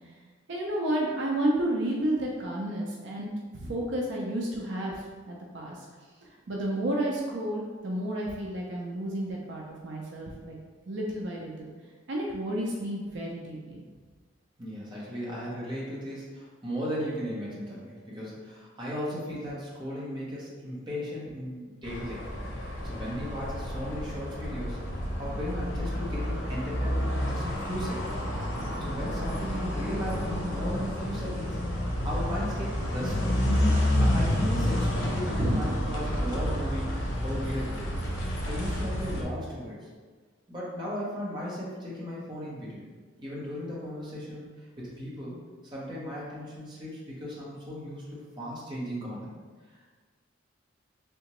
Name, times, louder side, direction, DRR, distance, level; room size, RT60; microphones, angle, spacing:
voice 1, 0.5-5.9 6.2-10.6 10.9-11.7 12.1-13.8 35.4-35.6, right 1 dB, 65° right, -2 dB, 0.4 m, -31 dB
voice 2, 14.6-22.2 22.8-28.1 28.8-33.4 34.0-36.9 37.2-37.9 38.4-39.8 40.5-42.9 43.2-44.4 44.8-45.4 45.6-49.3 49.6-49.8, equal, 25° right, -6 dB, 0.8 m, -36 dB
sound 1, 21.8-39.2, left 1 dB, 75° left, 0.7 m, -30 dB
3.4 x 2.8 x 2.9 m, 1.5 s
head